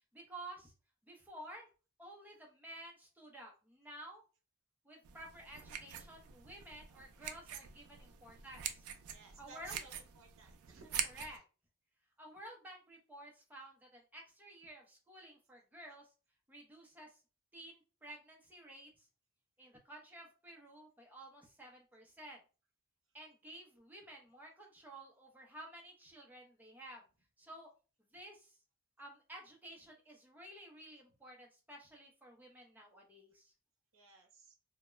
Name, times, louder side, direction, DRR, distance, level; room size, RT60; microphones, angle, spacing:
voice 1, 0.1-0.7 1.0-1.7 2.0-4.2 4.8-8.9 9.4-9.8 11.0-11.4 12.2-16.1 16.5-17.2 17.5-19.1 19.6-22.4 23.1-27.0 27.4-27.7 28.1-28.6 29.0-33.5, right 1 dB, 10° right, 0 dB, 0.6 m, -53 dB
sound 1, 5.0-11.4, right 8 dB, 80° right, 0.4 m, -45 dB
voice 2, 9.1-11.0 33.9-34.6, right 3 dB, 60° right, 2 dB, 0.7 m, -58 dB
2.3 x 2.1 x 3.0 m, 0.34 s
head